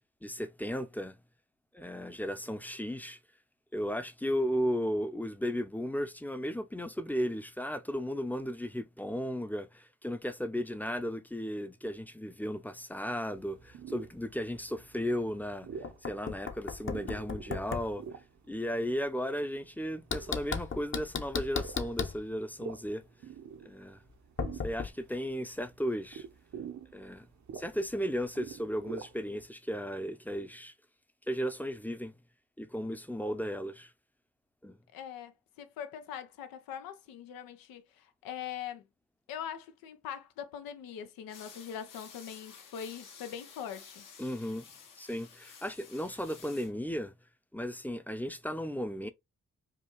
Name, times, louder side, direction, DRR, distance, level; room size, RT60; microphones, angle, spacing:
voice 1, 0.2-1.2 1.7-3.2 3.7-15.7 16.0-18.0 18.5-23.0 23.7-24.0 24.6-26.2 26.9-27.3 27.5-30.7 31.3-32.1 32.6-33.9 34.6-34.8 44.2-44.7 45.0-47.1 47.5-49.1, equal, 5° left, 0.6 m, -35 dB
sound 1, 13.3-29.5, right 7 dB, 55° right, 0.8 m, -48 dB
Knock, 15.8-17.9 20.1-22.2 24.4-24.9, left 5 dB, 35° left, 0.8 m, -36 dB
voice 2, 34.9-38.8 39.3-44.1, left 9 dB, 85° left, 0.6 m, -42 dB
sound 2, 41.3-46.7, left 6 dB, 70° left, 1.1 m, -52 dB
4.9 x 2.4 x 3.0 m
supercardioid pair, 40°, 34 cm